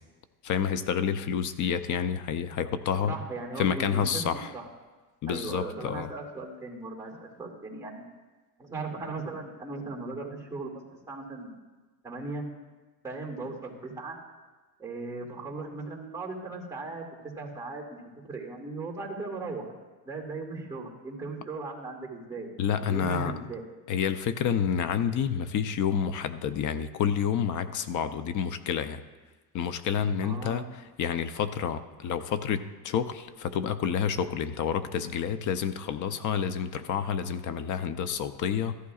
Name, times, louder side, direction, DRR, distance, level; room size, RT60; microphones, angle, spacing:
voice 1, 0.4-3.1 3.6-4.5 5.2-6.1 22.6-23.3 23.9-29.0 29.5-38.8, left 8 dB, 40° left, 11 dB, 0.6 m, -29 dB
voice 2, 3.0-4.7 5.3-8.0 8.6-10.8 11.1-11.5 12.0-12.4 13.0-14.2 14.8-19.7 20.1-22.5 22.8-23.6 30.2-30.8, right 3 dB, 5° right, -2 dB, 2.3 m, -38 dB
14.5 x 11.0 x 2.4 m, 1.3 s
supercardioid pair, 120°, 47 cm